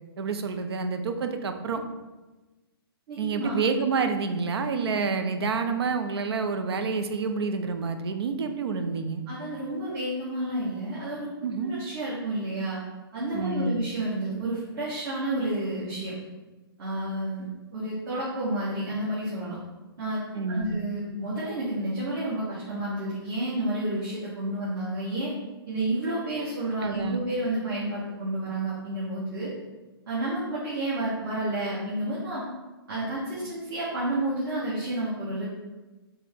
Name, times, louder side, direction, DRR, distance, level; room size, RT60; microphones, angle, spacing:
voice 1, 0.2-1.8 3.2-9.2 11.4-11.7 13.3-13.8 20.3-20.8 26.8-27.2, right 4 dB, 80° right, 7 dB, 0.5 m, -28 dB
voice 2, 3.1-3.5 9.3-11.3 11.6-12.8 13.1-16.1 16.8-19.6 20.0-25.3 25.7-29.5 30.1-32.4 32.9-35.4, right 1 dB, 50° right, -9 dB, 1.3 m, -30 dB
4.4 x 2.1 x 3.5 m, 1.2 s
hypercardioid pair, 140°, 13 cm